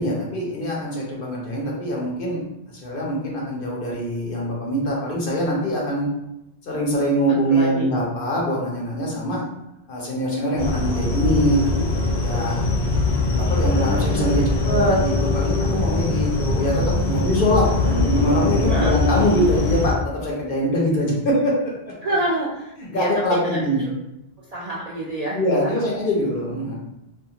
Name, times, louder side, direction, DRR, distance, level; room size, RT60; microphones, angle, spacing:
voice 1, 0.0-2.4 2.7-6.1 6.6-9.4 9.9-11.9 12.2-12.6 13.3-20.0 20.2-21.5 21.8-21.9 22.8-23.9 25.3-26.8, equal, 60° left, -3 dB, 0.8 m, -23 dB
voice 2, 7.3-7.9 12.3-12.5 18.7-18.9 22.0-23.6 24.5-25.7, right 1 dB, 55° right, -6 dB, 0.4 m, -27 dB
sound 1, 10.6-19.9, left 2 dB, 85° left, 0.9 m, -21 dB
2.5 x 2.3 x 2.7 m, 0.87 s
omnidirectional pair, 1.1 m